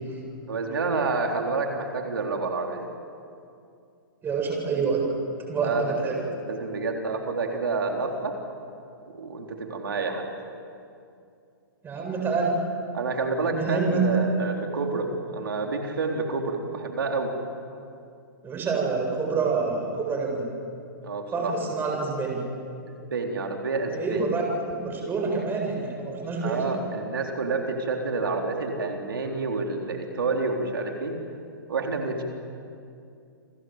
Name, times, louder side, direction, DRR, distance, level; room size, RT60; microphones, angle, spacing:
voice 1, 0.5-2.9 5.6-8.4 9.1-10.2 12.9-17.3 21.0-21.5 23.1-24.2 26.4-31.2 31.7-32.2, right 3 dB, 85° right, 2 dB, 3.8 m, -28 dB
voice 2, 4.2-5.0 5.5-6.2 11.8-12.6 13.5-14.2 18.4-20.5 21.3-22.4 23.9-24.4 24.7-26.7, right 4 dB, 20° right, 0 dB, 8.0 m, -27 dB
30.0 x 22.5 x 8.0 m, 2.5 s
hypercardioid pair, 135°, 11 cm